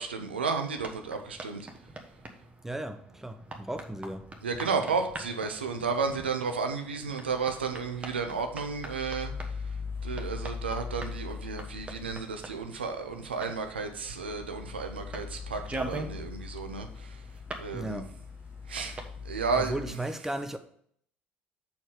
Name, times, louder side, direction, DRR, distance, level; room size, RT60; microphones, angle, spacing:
voice 1, 0.0-1.7 4.4-9.3 10.0-17.1 17.6-18.0 18.7-19.0 19.2-19.7, right 5 dB, 80° right, 0.6 m, -32 dB
sound 1, 0.7-19.9, right 2 dB, 25° right, 1.2 m, -45 dB
voice 2, 2.6-4.3 17.7-18.1 19.5-20.6, right 1 dB, 5° right, 0.7 m, -36 dB
sound 2, 7.0-19.9, left 5 dB, 40° left, 0.5 m, -41 dB
6.9 x 4.4 x 4.9 m
figure-of-eight pair, 55°, 6 cm